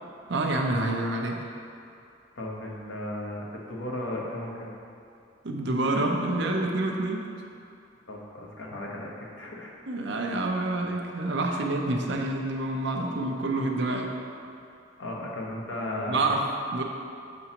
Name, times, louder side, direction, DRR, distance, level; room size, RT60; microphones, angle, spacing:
voice 1, 0.3-1.5 5.4-7.3 9.9-14.2 16.1-16.8, right 2 dB, 65° right, 1 dB, 0.7 m, -27 dB
voice 2, 2.3-4.7 8.1-9.7 11.5-11.6 15.0-16.2, left 1 dB, 75° left, -3 dB, 1.0 m, -35 dB
6.8 x 6.2 x 2.9 m, 2.5 s
head